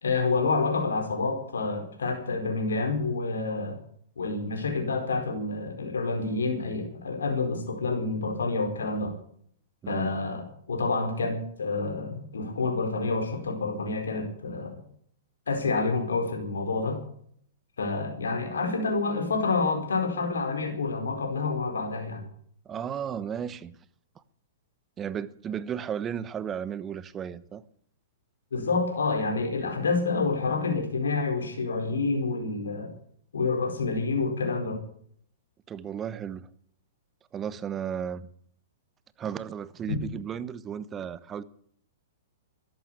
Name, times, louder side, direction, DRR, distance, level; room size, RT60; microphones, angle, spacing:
voice 1, 0.0-3.8 4.2-9.1 9.9-14.7 15.5-17.0 17.8-22.2 28.5-32.9 33.3-34.8 39.9-40.0, left 3 dB, 80° left, 4.5 m, -28 dB
voice 2, 22.7-23.7 25.0-27.6 35.7-36.5 37.3-38.3 39.2-41.4, right 8 dB, 25° right, 1.0 m, -34 dB
13.5 x 11.5 x 8.2 m
hypercardioid pair, 115°, 0 cm